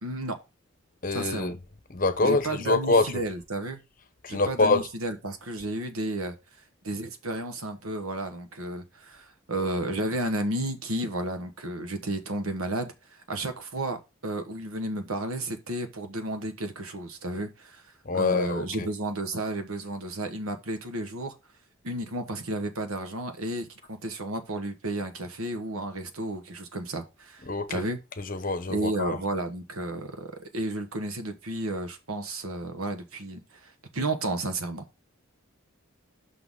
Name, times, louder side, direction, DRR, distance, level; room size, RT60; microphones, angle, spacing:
voice 1, 0.0-0.4 1.1-1.5 2.2-3.8 4.3-6.3 6.8-17.8 18.1-21.3 21.8-27.4 27.7-28.0 28.7-34.8, right 1 dB, 90° right, 1.3 m, -32 dB
voice 2, 1.0-1.6 1.9-3.2 4.2-4.8 18.0-18.9 27.4-27.8 28.2-29.2, left 3 dB, 40° left, 0.8 m, -25 dB
6.2 x 5.8 x 3.7 m
head